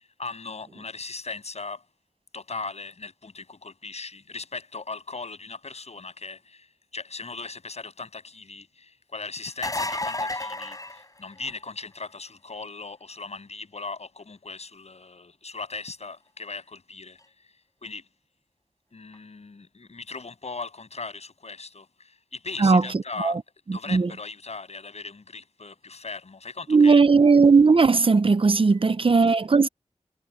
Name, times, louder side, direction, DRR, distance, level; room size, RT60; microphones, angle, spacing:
voice 1, 0.2-1.8 2.3-6.6 6.9-17.2 17.8-18.0 18.9-23.4 23.7-27.0, left 4 dB, 65° left, 8.0 m, -38 dB
sound 1, 9.5-11.7 17.2-17.3 19.1-19.2, left 2 dB, 30° left, 5.3 m, -31 dB
voice 2, 22.6-23.4 23.7-24.1 26.7-29.7, right 4 dB, 45° right, 0.7 m, -18 dB
wide cardioid pair, 70°, 12 cm